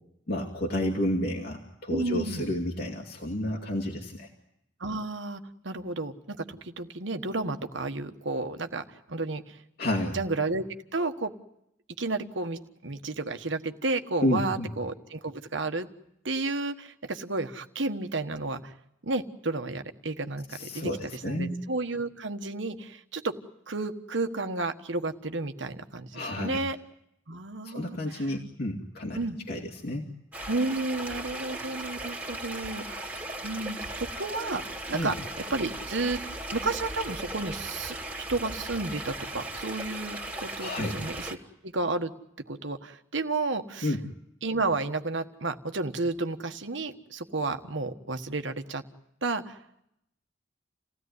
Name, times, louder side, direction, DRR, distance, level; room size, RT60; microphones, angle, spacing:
voice 1, 0.3-4.3 9.8-10.2 14.2-14.7 20.5-21.5 26.1-26.6 27.3-27.4 27.6-29.2 29.5-30.1 34.9-35.1 40.6-41.0 43.8-44.0, left 1 dB, 55° left, 0 dB, 2.5 m, -30 dB
voice 2, 1.9-2.5 4.8-9.6 10.1-10.6 10.9-11.3 12.0-15.9 16.2-18.7 19.0-23.4 23.7-26.8 27.3-28.2 29.1-29.4 30.5-34.6 34.9-35.2 35.5-36.2 36.5-41.4 41.6-42.1 42.5-44.0 44.4-48.8 49.2-49.6, right 3 dB, 70° right, 7 dB, 1.4 m, -32 dB
Stream-Brook, 30.3-41.4, right 1 dB, 10° right, 2.4 m, -37 dB
28.5 x 16.5 x 9.5 m, 0.81 s
head